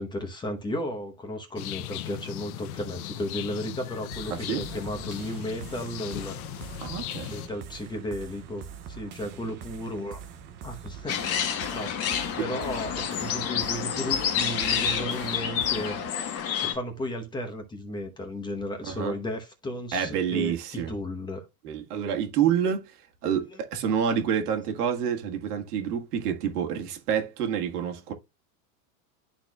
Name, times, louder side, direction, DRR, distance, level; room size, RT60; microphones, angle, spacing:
voice 1, 0.0-6.6 7.3-10.2 10.6-11.2 11.7-12.1 12.4-16.0 16.6-21.5 23.5-23.6, left 1 dB, 10° left, 0.9 m, -34 dB
sound 1, 1.6-7.5, left 13 dB, 70° left, 0.8 m, -38 dB
sound 2, 4.1-16.1, right 7 dB, 25° right, 0.6 m, -44 dB
voice 2, 6.8-7.3 18.9-19.1 19.9-20.9 21.6-22.9 23.2-28.1, right 8 dB, 85° right, 1.8 m, -28 dB
sound 3, 11.1-16.7, left 8 dB, 30° left, 1.2 m, -28 dB
12.0 x 4.2 x 2.3 m
supercardioid pair, 155°, 45 cm